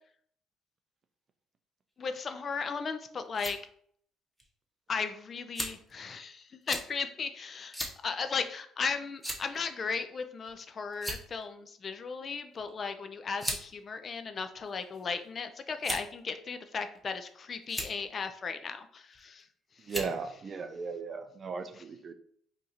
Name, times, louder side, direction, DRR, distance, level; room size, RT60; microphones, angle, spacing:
voice 1, 2.0-3.6 4.9-19.4 21.7-21.8, left 5 dB, 45° left, 9 dB, 0.4 m, -36 dB
sound 1, 3.3-3.6 4.4-4.5 5.6-5.9 6.7-6.9 7.7-8.0 8.3-8.5 9.2-9.6 10.5-10.6 10.9-11.4 12.5-12.7 13.4-13.6 14.5-15.0 15.8-16.2 17.0-17.3 17.6-17.9 19.1-19.4 19.9-20.2, equal, 5° left, 0.8 m, -36 dB
voice 2, 19.9-22.1, right 5 dB, 40° right, 9 dB, 0.4 m, -36 dB
2.8 x 2.4 x 4.0 m, 0.62 s
supercardioid pair, 75°, 0 cm